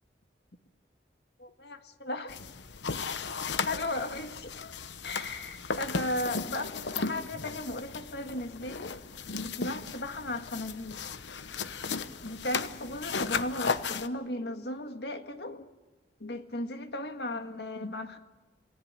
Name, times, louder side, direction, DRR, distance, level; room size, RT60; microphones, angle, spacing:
voice 1, 1.4-2.4 3.7-4.6 5.0-9.0 9.4-11.0 12.2-15.7 16.2-18.2, left 1 dB, 70° left, 1.8 m, -36 dB
sound 1, 2.3-14.1, left 5 dB, 85° left, 1.0 m, -35 dB
28.5 x 18.5 x 8.9 m
head